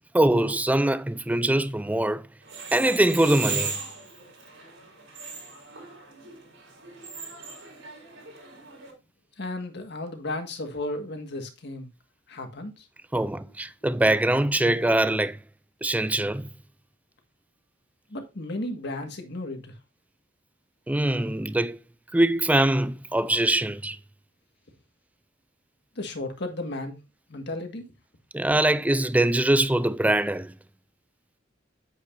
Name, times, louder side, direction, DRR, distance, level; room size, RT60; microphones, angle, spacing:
voice 1, 0.1-2.2 2.7-3.8 13.1-15.4 15.8-16.5 20.9-21.8 22.1-24.0 28.3-30.5, right 1 dB, 10° right, 0.4 m, -23 dB
sound 1, 2.4-8.9, right 5 dB, 90° right, 5.0 m, -37 dB
voice 2, 9.4-11.9 12.3-12.9 18.1-19.7 25.9-27.0 27.3-27.9, left 2 dB, 60° left, 1.7 m, -34 dB
8.9 x 8.0 x 2.6 m
head